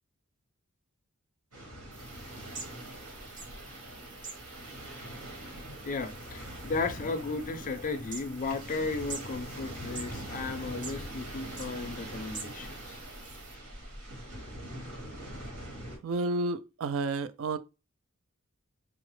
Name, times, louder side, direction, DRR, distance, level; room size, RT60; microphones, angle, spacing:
sound 1, 1.5-16.0, right 1 dB, 85° right, 1.3 m, -43 dB
sound 2, 1.9-13.6, right 4 dB, 35° right, 0.7 m, -48 dB
voice 1, 5.8-13.0, left 3 dB, 35° left, 0.4 m, -35 dB
voice 2, 16.0-17.6, right 3 dB, 65° right, 0.4 m, -31 dB
4.7 x 2.0 x 3.0 m
head